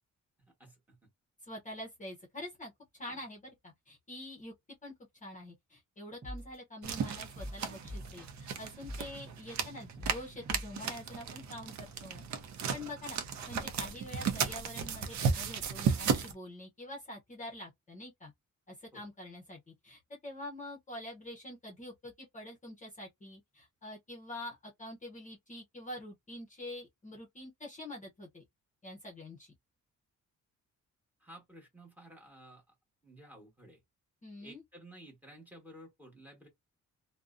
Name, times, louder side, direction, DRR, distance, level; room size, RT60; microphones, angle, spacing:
voice 1, 0.6-1.0 3.1-3.2 18.9-19.0 31.2-32.6 33.0-33.8 34.4-36.5, right 1 dB, 5° right, 1.1 m, -53 dB
voice 2, 1.4-4.5 4.8-4.9 5.2-12.2 12.7-18.3 18.7-28.4 28.8-29.5 34.2-34.6, left 1 dB, 25° left, 0.7 m, -46 dB
sound 1, 6.2-6.6 6.9-8.5 8.8-9.2 9.5-11.3, equal, 30° right, 0.8 m, -44 dB
sound 2, 6.8-16.3, right 6 dB, 60° right, 0.6 m, -35 dB
2.5 x 2.1 x 2.4 m
wide cardioid pair, 160°, 32 cm